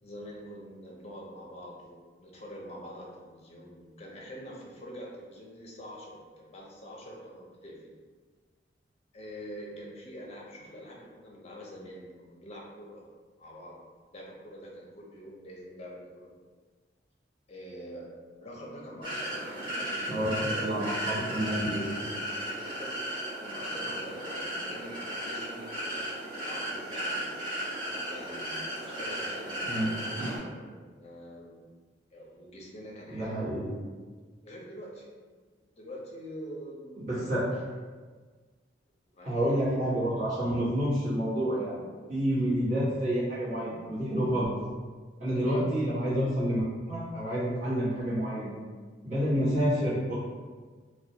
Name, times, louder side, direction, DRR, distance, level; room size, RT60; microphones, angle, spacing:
voice 1, 0.0-7.9 9.1-13.0 13.4-13.8 14.1-16.3 17.5-18.1 18.4-21.1 22.6-22.9 23.4-27.2 28.1-30.3 30.5-31.6 32.1-33.4 34.4-35.1 35.8-37.1 39.0-39.4 45.3-45.6, equal, 35° left, -3 dB, 0.5 m, -45 dB
sound 1, 19.0-30.4, right 1 dB, 25° right, 0.9 m, -35 dB
voice 2, 20.1-22.1 29.7-29.9 33.1-33.7 37.0-37.5 39.2-41.8 42.1-44.6 45.2-46.6 46.9-48.6 49.0-50.1, equal, 45° right, -11 dB, 1.2 m, -29 dB
2.3 x 2.1 x 2.7 m, 1.5 s
head